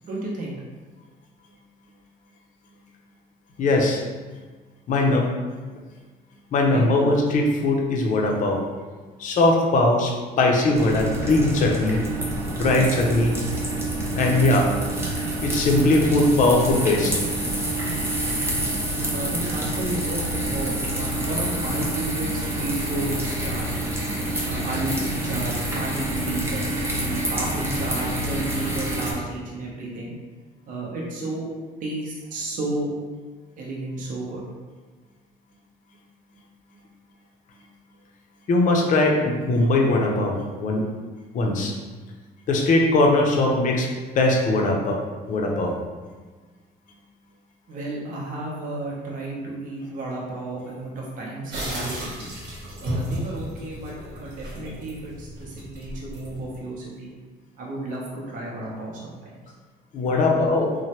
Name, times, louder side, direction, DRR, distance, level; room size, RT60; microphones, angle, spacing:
voice 1, 0.0-0.6 6.7-7.1 19.1-23.9 24.4-30.1 30.7-31.5 31.8-33.0 33.6-34.4 47.7-52.3 52.8-57.1 57.6-59.4 60.1-60.5, right 2 dB, 50° right, -4 dB, 0.7 m, -32 dB
voice 2, 3.6-4.0 4.9-5.3 6.5-8.6 9.2-10.1 10.4-12.0 12.6-13.3 14.2-14.7 15.4-17.1 38.5-40.9 41.3-41.7 42.5-43.9 44.1-45.0 45.3-45.7 59.9-60.7, left 2 dB, 50° left, 0 dB, 0.5 m, -20 dB
sound 1, 10.7-29.1, right 1 dB, 15° right, 0.6 m, -27 dB
sound 2, 51.5-56.6, equal, 80° right, 1.0 m, -34 dB
3.0 x 2.1 x 2.8 m, 1.4 s
cardioid pair, 110°, 17 cm